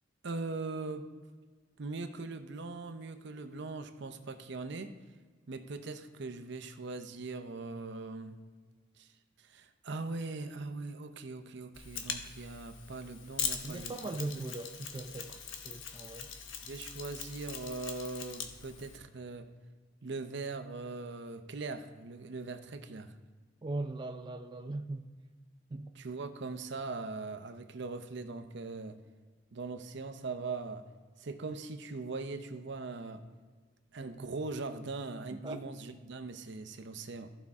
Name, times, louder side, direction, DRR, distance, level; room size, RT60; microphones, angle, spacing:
voice 1, 0.2-1.1 1.8-5.0 5.5-8.4 9.0-9.1 9.4-14.5 16.6-19.5 20.0-23.1 26.0-29.0 29.5-30.9 31.2-33.2 33.9-37.3, right 3 dB, 65° right, 0.7 m, -41 dB
Mechanisms, 11.7-19.0, left 7 dB, 85° left, 1.0 m, -41 dB
voice 2, 13.6-16.3 23.6-25.1 25.7-25.9 35.4-35.6, right 2 dB, 25° right, 0.4 m, -39 dB
15.0 x 5.5 x 3.6 m
head